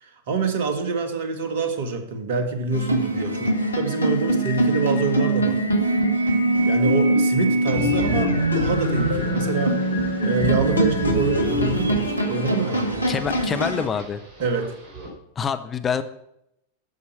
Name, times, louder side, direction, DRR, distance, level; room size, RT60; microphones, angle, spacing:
voice 1, 0.0-5.6 6.7-9.8 10.2-13.1 14.4-14.8, right 4 dB, 55° right, 7 dB, 1.7 m, -26 dB
sound 1, 2.7-13.9, right 1 dB, 80° left, 1.3 m, -22 dB
sound 2, 7.7-15.1, right 2 dB, 40° right, 4.7 m, -33 dB
voice 2, 13.1-14.2 15.4-16.0, left 6 dB, 20° left, 10 dB, 0.7 m, -26 dB
10.5 x 7.2 x 5.9 m, 0.78 s
figure-of-eight pair, 90°, 0 cm